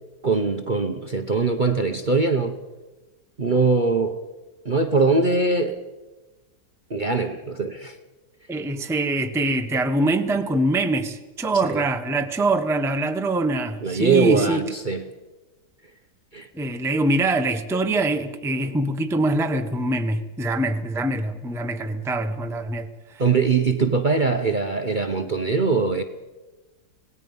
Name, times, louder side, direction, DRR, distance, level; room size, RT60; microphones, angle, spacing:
voice 1, 0.2-2.6 3.4-4.1 4.6-5.8 6.9-8.0 11.7-11.8 13.8-15.0 16.3-16.5 23.2-26.0, right 4 dB, 35° right, 0.9 m, -22 dB
voice 2, 8.5-14.6 16.5-23.2, right 2 dB, ahead, 0.8 m, -24 dB
26.5 x 18.5 x 5.5 m
omnidirectional pair, 1.8 m